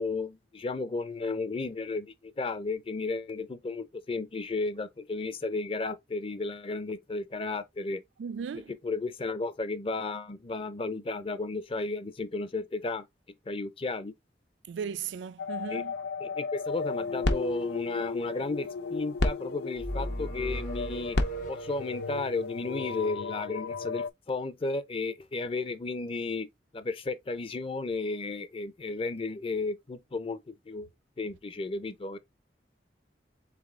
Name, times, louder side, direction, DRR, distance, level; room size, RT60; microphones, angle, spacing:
voice 1, 0.0-8.0 8.7-13.1 13.5-14.1 15.7-15.8 16.2-21.2 21.5-26.5 26.7-30.9 31.2-32.2, left 3 dB, 30° left, 0.5 m, -33 dB
voice 2, 8.2-8.7 14.7-15.9, right 7 dB, 80° right, 0.4 m, -36 dB
sound 1, 15.4-24.1, left 5 dB, 85° left, 0.4 m, -36 dB
sound 2, 16.7-23.1, left 1 dB, 70° left, 0.8 m, -35 dB
sound 3, 19.8-22.2, right 1 dB, 45° left, 1.0 m, -37 dB
3.9 x 3.4 x 3.5 m
head